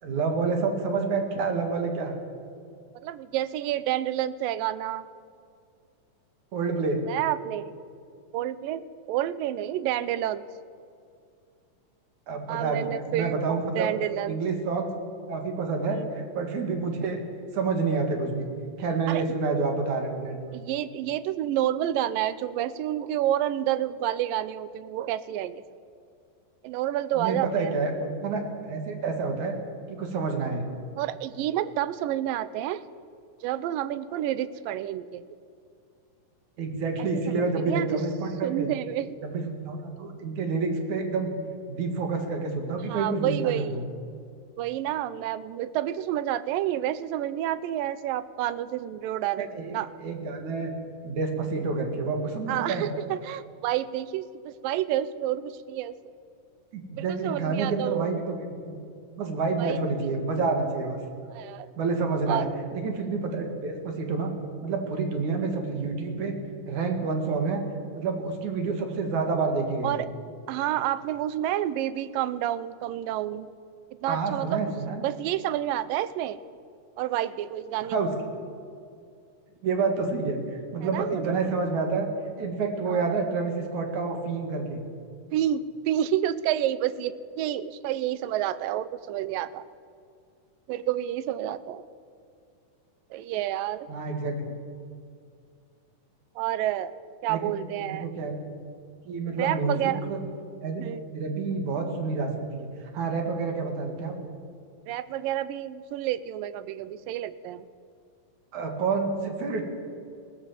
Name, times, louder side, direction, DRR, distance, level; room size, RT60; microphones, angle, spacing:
voice 1, 0.0-2.1 6.5-7.0 12.3-13.9 14.3-14.9 15.3-17.2 17.5-18.5 18.8-20.6 27.1-29.6 29.9-30.7 36.6-38.7 39.2-41.3 41.7-43.8 49.4-49.7 50.0-50.7 51.0-52.9 56.7-58.8 59.1-61.0 61.8-62.5 62.7-64.3 64.6-66.4 66.7-67.6 68.0-70.0 74.1-75.0 77.9-78.1 79.6-82.1 82.4-84.8 93.9-94.5 97.3-97.4 98.0-98.4 99.0-100.2 100.6-100.8 101.1-104.1 108.5-109.6, right 4 dB, 60° right, 4 dB, 3.4 m, -28 dB
voice 2, 3.0-5.1 7.0-7.7 8.3-10.5 12.5-14.4 15.9-16.1 19.1-19.2 20.5-25.8 26.6-27.7 31.0-32.8 33.4-35.2 37.3-38.0 38.4-39.2 42.9-43.9 44.6-49.9 52.5-56.0 57.0-58.1 59.6-59.8 61.3-61.7 62.3-62.5 69.8-70.1 70.5-73.5 74.0-74.6 75.0-76.4 77.0-78.0 80.8-81.4 82.9-83.1 85.3-89.7 90.7-91.8 93.1-93.9 96.4-96.9 97.2-98.1 99.4-100.0 100.8-101.1 104.9-107.6, right 12 dB, 85° right, 16 dB, 2.4 m, -29 dB
21.0 x 16.5 x 7.5 m, 2.3 s
omnidirectional pair, 4.0 m